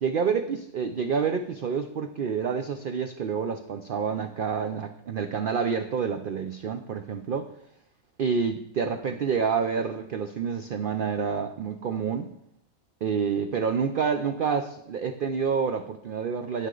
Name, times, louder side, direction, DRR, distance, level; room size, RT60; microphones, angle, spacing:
voice 1, 0.0-7.5 8.2-12.3 13.0-16.7, right 6 dB, 60° right, 7 dB, 0.5 m, -28 dB
9.4 x 9.3 x 3.9 m, 0.75 s
omnidirectional pair, 1.5 m